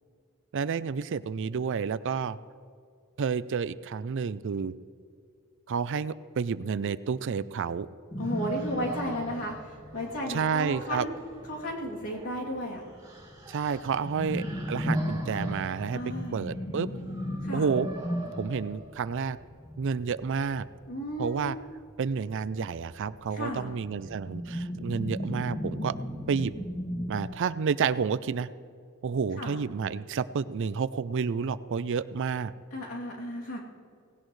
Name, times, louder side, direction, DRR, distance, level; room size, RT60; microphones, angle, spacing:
voice 1, 0.5-2.4 3.2-4.7 5.7-7.9 10.3-11.1 13.5-16.0 16.3-16.9 17.5-17.9 18.4-19.4 19.8-20.6 21.2-21.5 22.0-25.9 26.3-26.5 27.1-28.5 29.0-32.5, right 6 dB, 60° right, 16 dB, 0.4 m, -30 dB
sound 1, 8.1-12.1 12.4-12.5 12.8-27.2, equal, 20° left, 1.9 m, -36 dB
voice 2, 8.2-11.1 11.5-12.8 15.9-16.4 17.4-17.8 20.9-21.5 23.3-23.7 29.4-29.6 32.7-33.6, equal, 75° left, -3 dB, 3.0 m, -34 dB
sound 2, 8.2-19.3, right 2 dB, 15° right, 2.9 m, -46 dB
18.0 x 17.0 x 3.2 m, 2.3 s
head